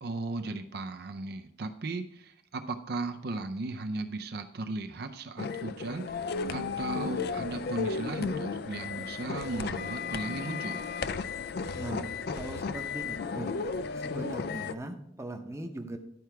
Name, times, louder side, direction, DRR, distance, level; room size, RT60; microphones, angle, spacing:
voice 1, 0.0-10.9, right 3 dB, 60° right, 7 dB, 0.5 m, -36 dB
sound 1, 5.4-14.7, left 5 dB, 60° left, 0.4 m, -34 dB
voice 2, 11.7-13.5 13.9-16.0, right 1 dB, 15° right, 4 dB, 0.7 m, -40 dB
11.0 x 4.7 x 4.6 m, 0.74 s
head